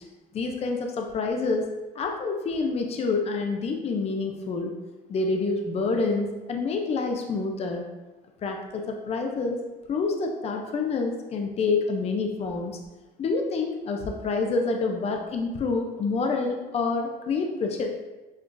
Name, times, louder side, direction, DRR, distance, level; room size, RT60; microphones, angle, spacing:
voice 1, 0.3-1.7 2.0-4.7 5.1-7.8 8.4-9.6 9.9-12.8 13.2-17.9, left 4 dB, 40° left, 3 dB, 0.5 m, -27 dB
6.2 x 2.4 x 2.5 m, 1.1 s
cardioid pair, 110°, 17 cm